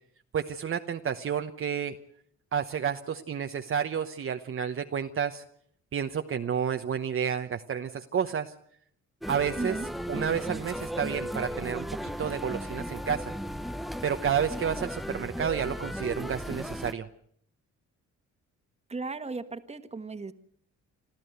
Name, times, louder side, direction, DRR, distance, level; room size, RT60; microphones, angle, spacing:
voice 1, 0.3-2.0 2.5-5.4 5.9-8.5 9.3-9.8 10.1-11.9 12.2-13.3 14.0-17.1, right 7 dB, 45° right, 6 dB, 1.0 m, -30 dB
sound 1, 9.2-16.9, equal, ahead, 0.8 m, -36 dB
voice 2, 9.6-9.9 18.9-20.3, right 3 dB, 20° right, 10 dB, 1.6 m, -36 dB
26.5 x 13.5 x 8.1 m, 0.66 s
cardioid pair, 90°, 30 cm